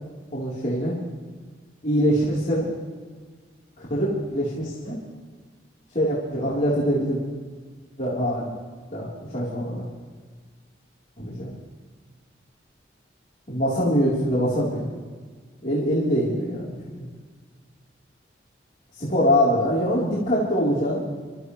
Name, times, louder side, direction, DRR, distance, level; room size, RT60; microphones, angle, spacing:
voice 1, 0.3-1.0 1.8-2.7 3.8-5.0 5.9-7.2 8.0-8.5 8.9-9.9 11.2-11.5 13.5-14.8 15.6-17.1 19.0-21.1, equal, 40° left, -9 dB, 3.8 m, -24 dB
28.0 x 14.0 x 3.3 m, 1.5 s
head